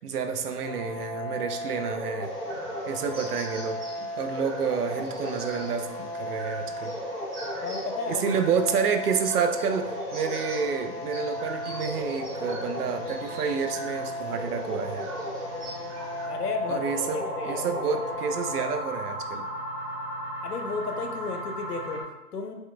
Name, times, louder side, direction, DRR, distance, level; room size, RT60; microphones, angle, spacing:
voice 1, 0.0-2.3 2.9-7.0 8.1-15.1 16.7-19.5, right 6 dB, 70° right, 7 dB, 0.5 m, -29 dB
sound 1, 0.6-18.6, left 1 dB, 20° left, 1.1 m, -35 dB
sound 2, 2.2-16.3, right 2 dB, 50° right, 1.0 m, -44 dB
sound 3, 2.4-3.9 4.3-4.4 4.8-4.9 5.3-5.4 10.2-22.0, equal, 5° left, 0.7 m, -39 dB
voice 2, 7.6-8.3 16.3-17.6 20.4-22.5, left 4 dB, 75° left, 5 dB, 0.7 m, -33 dB
3.4 x 3.0 x 2.2 m, 1.0 s
figure-of-eight pair, 140°, 48 cm